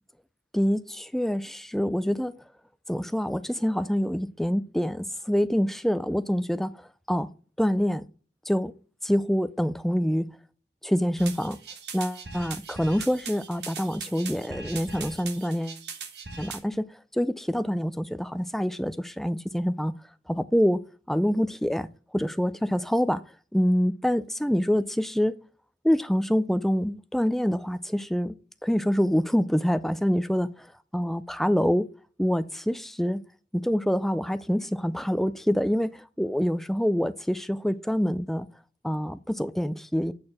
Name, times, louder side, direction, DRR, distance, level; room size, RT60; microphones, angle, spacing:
voice 1, 0.5-2.3 2.9-7.3 7.6-8.0 8.5-8.7 9.0-10.3 10.8-11.6 11.9-15.8 16.4-19.9 20.3-20.8 21.1-23.2 23.5-25.4 25.8-28.4 28.6-30.7 30.9-31.9 32.2-33.2 33.5-38.5 38.8-40.1, equal, ahead, 0.3 m, -26 dB
sound 1, 11.2-16.6, right 5 dB, 65° right, 1.3 m, -40 dB
8.5 x 4.5 x 4.8 m
head